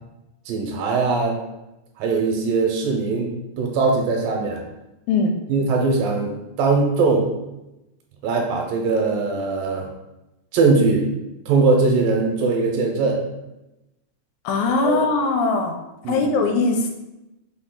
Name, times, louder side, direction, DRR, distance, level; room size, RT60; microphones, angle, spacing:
voice 1, 0.5-1.4 2.0-3.3 3.6-4.6 5.5-7.3 8.2-9.9 10.5-11.1 11.5-13.2 14.8-15.1 16.0-16.3, right 4 dB, 80° right, 0 dB, 2.3 m, -20 dB
voice 2, 14.4-15.8 16.1-16.9, left 3 dB, 80° left, 3 dB, 2.2 m, -20 dB
5.9 x 2.3 x 3.6 m, 0.95 s
omnidirectional pair, 4.1 m